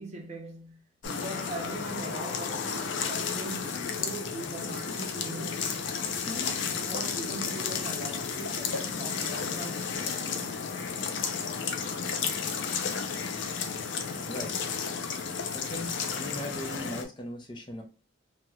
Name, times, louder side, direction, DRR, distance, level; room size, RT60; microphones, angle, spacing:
voice 1, 0.0-5.9 6.2-10.7, right 2 dB, 35° right, 0.7 m, -41 dB
sound 1, 1.0-17.0, left 6 dB, 70° left, 0.5 m, -32 dB
voice 2, 14.2-14.6 15.5-17.8, left 1 dB, 25° left, 0.5 m, -39 dB
2.9 x 2.8 x 2.3 m
head